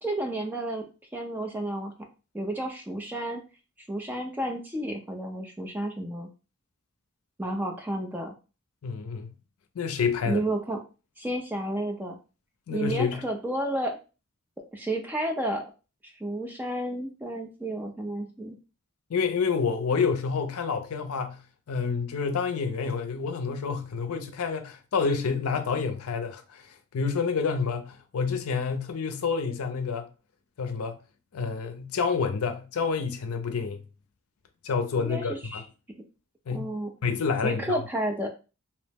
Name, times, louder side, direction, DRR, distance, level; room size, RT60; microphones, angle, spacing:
voice 1, 0.0-0.8 1.1-1.9 2.3-3.4 3.9-6.3 7.4-8.3 10.3-10.8 11.2-12.2 12.7-14.0 14.7-15.6 16.2-18.6 35.0-35.6 36.5-36.9 37.4-38.3, right 1 dB, 10° right, 0.3 m, -31 dB
voice 2, 8.8-9.3 9.8-10.4 12.7-13.2 19.1-21.4 21.7-26.6 26.9-30.1 30.6-31.0 31.3-33.8 34.6-35.6 36.5-36.7 37.0-37.8, left 5 dB, 85° left, 0.5 m, -28 dB
2.8 x 2.1 x 3.3 m
head